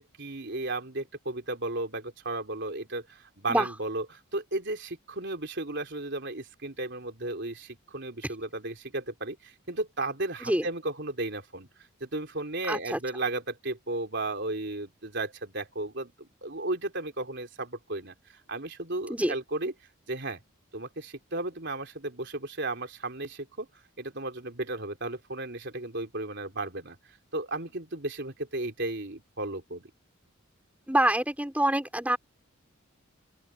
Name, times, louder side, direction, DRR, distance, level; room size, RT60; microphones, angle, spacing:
voice 1, 0.0-11.7 12.0-19.7 20.1-20.4 20.7-23.7 24.0-29.9, right 2 dB, 55° right, 3.9 m, -34 dB
voice 2, 12.7-13.0 19.1-19.3 30.9-32.2, right 1 dB, 5° right, 4.9 m, -26 dB
open air
head